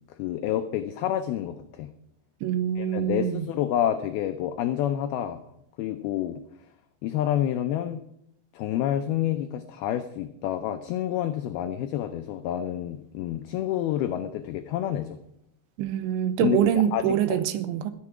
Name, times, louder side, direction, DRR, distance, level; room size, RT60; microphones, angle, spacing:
voice 1, 0.2-1.9 2.8-5.4 5.8-6.4 7.0-8.0 8.5-15.2 16.4-17.0 17.3-17.4, left 11 dB, 90° left, 8 dB, 2.1 m, -28 dB
voice 2, 2.4-3.5 15.8-17.9, right 10 dB, 90° right, 11 dB, 3.2 m, -25 dB
21.5 x 7.4 x 4.8 m, 0.72 s
omnidirectional pair, 5.2 m